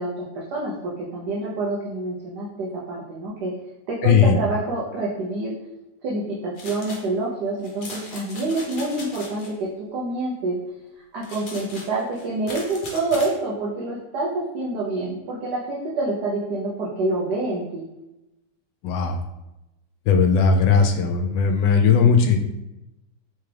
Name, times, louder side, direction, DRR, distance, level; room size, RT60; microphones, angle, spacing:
voice 1, 0.0-3.5 3.9-5.5 6.0-10.6 11.1-17.8, right 2 dB, 75° right, -5 dB, 1.4 m, -27 dB
voice 2, 4.0-4.4 18.8-19.2 20.1-22.4, left 5 dB, 85° left, 4 dB, 1.2 m, -17 dB
sound 1, 6.6-7.1 7.6-9.5 11.2-13.4, left 2 dB, 50° left, 0.6 m, -39 dB
3.9 x 3.5 x 3.3 m, 0.94 s
omnidirectional pair, 1.8 m